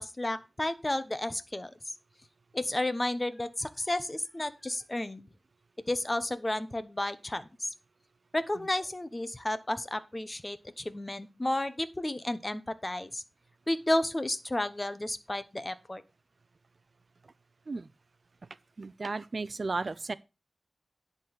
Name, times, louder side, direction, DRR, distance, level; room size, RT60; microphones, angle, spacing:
voice 1, 0.0-1.7 2.5-5.3 5.9-7.7 8.3-13.2 13.7-16.0, left 1 dB, 25° left, 1.1 m, -32 dB
voice 2, 18.8-20.1, right 3 dB, 60° right, 0.6 m, -34 dB
10.5 x 3.9 x 6.7 m
cardioid pair, 55°, 0 cm